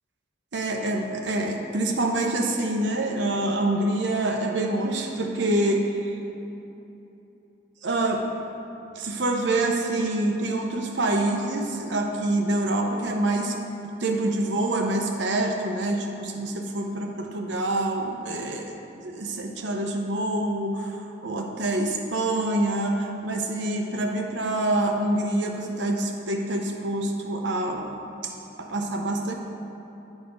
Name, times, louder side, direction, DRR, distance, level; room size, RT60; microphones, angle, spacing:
voice 1, 0.5-6.2 7.8-8.3 8.9-13.6 14.0-18.7 19.0-27.9 28.2-28.3 28.6-29.3, right 1 dB, 75° right, 3 dB, 0.8 m, -26 dB
10.5 x 4.2 x 5.1 m, 3.0 s
head